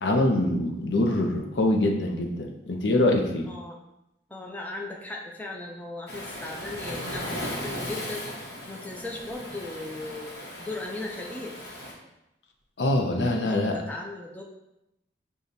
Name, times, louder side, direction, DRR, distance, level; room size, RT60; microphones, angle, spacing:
voice 1, 0.0-3.5 12.8-13.8, left 1 dB, 80° left, 3 dB, 0.6 m, -24 dB
voice 2, 3.5-3.8 4.3-8.3 8.7-10.3 10.6-11.6 13.2-14.4, left 2 dB, 10° left, -1 dB, 0.4 m, -37 dB
Waves surf, 6.1-11.9, left 1 dB, 60° left, 1.0 m, -37 dB
6.7 x 2.3 x 2.7 m, 0.89 s
head